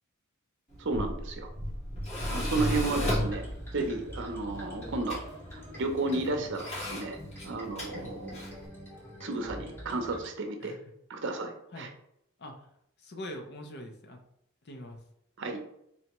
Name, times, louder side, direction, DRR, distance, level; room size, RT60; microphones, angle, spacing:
Tools, 0.7-8.7, equal, 30° left, 1.3 m, -35 dB
voice 1, 0.8-1.5 2.2-3.4 3.7-5.2 5.8-7.2 7.4-8.4 9.2-10.8 11.1-11.9 15.4-15.6, right 2 dB, 60° right, 5 dB, 0.7 m, -32 dB
sound 1, 2.6-10.3, equal, 10° left, 1.4 m, -45 dB
voice 2, 6.1-6.6 7.8-8.2 10.6-10.8 11.7-11.9 12.4-12.7 13.0-14.2 14.6-15.0, left 1 dB, 50° left, 4 dB, 0.6 m, -45 dB
4.2 x 3.4 x 3.0 m, 0.75 s
head